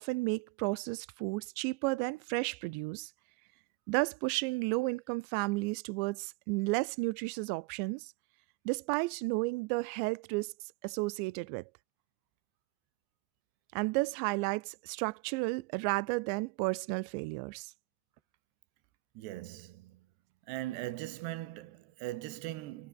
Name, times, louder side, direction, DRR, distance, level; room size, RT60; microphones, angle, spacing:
voice 1, 0.0-3.1 3.9-8.1 8.7-10.5 10.8-11.6 13.7-17.7, right 25 dB, 90° right, 2.5 m, -32 dB
voice 2, 19.1-20.1 20.5-22.9, right 16 dB, 70° right, 2.9 m, -40 dB
omnidirectional pair, 5.7 m